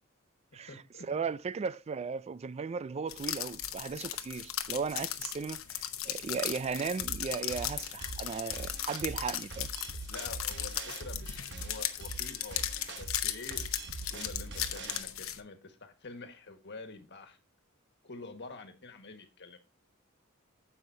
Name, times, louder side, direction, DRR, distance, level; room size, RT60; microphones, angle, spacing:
voice 1, 0.5-1.3 10.1-12.6 13.0-17.4 18.0-19.6, left 3 dB, 55° left, 1.5 m, -47 dB
voice 2, 1.1-9.7, right 5 dB, 30° right, 0.3 m, -36 dB
sound 1, 3.1-15.4, left 12 dB, 75° left, 0.9 m, -37 dB
sound 2, 7.0-15.0, right 3 dB, 55° right, 1.0 m, -43 dB
15.0 x 5.6 x 2.7 m
head